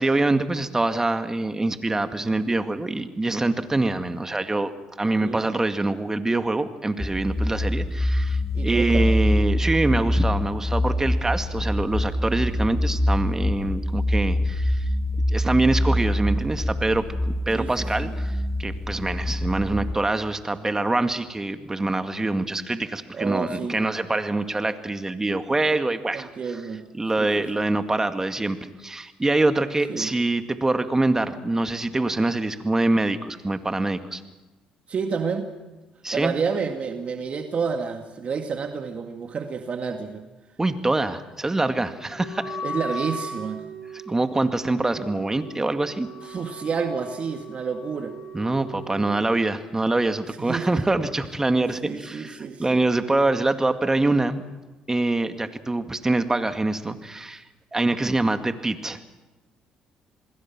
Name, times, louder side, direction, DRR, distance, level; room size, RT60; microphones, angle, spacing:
voice 1, 0.0-4.7 5.0-14.8 15.3-26.3 27.0-34.2 36.0-36.3 40.6-42.6 44.1-46.1 48.3-54.4 54.9-57.4 57.7-59.0, right 2 dB, 20° right, 8 dB, 2.1 m, -25 dB
sound 1, 7.0-20.0, left 1 dB, 15° left, 1.4 m, -25 dB
voice 2, 8.5-9.1 17.5-18.1 23.1-23.8 26.1-26.8 27.2-27.7 29.9-30.1 34.9-35.5 36.1-40.2 42.6-43.6 46.2-48.2 50.4-50.7 51.8-52.8, right 5 dB, 50° right, 5 dB, 2.1 m, -29 dB
Wind instrument woodwind instrument, 42.1-49.2, right 1 dB, 70° left, 7.9 m, -37 dB
27.5 x 21.0 x 6.1 m, 1.1 s
supercardioid pair, 70°, 3 cm